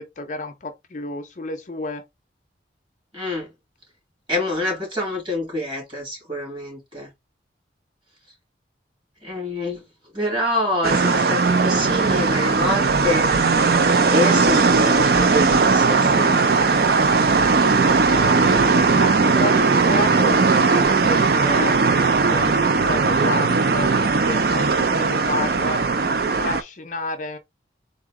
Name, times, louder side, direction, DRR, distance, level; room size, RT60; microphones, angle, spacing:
voice 1, 0.0-2.0 17.8-25.8 26.4-27.4, left 2 dB, 40° left, 0.5 m, -31 dB
voice 2, 3.1-3.5 4.3-7.1 9.2-9.8 10.1-13.3 14.1-16.4, left 1 dB, 25° right, 2.6 m, -26 dB
sound 1, 10.8-26.6, right 4 dB, 55° right, 0.5 m, -18 dB
3.9 x 2.8 x 3.6 m
head